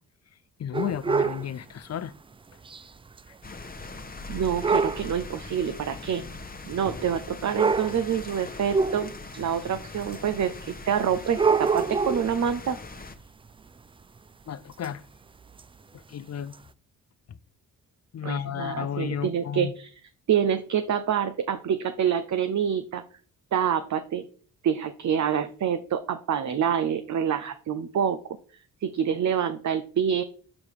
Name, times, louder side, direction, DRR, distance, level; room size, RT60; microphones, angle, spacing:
voice 1, 0.6-2.1 14.5-15.0 15.9-16.5 18.1-19.7, left 8 dB, 45° left, 0.6 m, -33 dB
sound 1, 0.7-1.5 2.7-2.8 3.2-3.3 4.6-5.1 6.1-6.2 7.2-7.3 7.5-8.1 8.7-9.4 10.1-10.2 11.3-12.3 14.8-14.9 15.6-15.7 16.5-16.6, right 5 dB, 15° right, 0.3 m, -25 dB
sound 2, 3.4-13.2, left 3 dB, 25° left, 1.1 m, -41 dB
voice 2, 4.3-6.2 6.7-12.8 18.2-19.9 20.3-23.0 23.5-24.3 24.6-28.2 28.8-30.2, right 8 dB, 50° right, 0.7 m, -27 dB
7.3 x 4.8 x 4.8 m
cardioid pair, 65°, 36 cm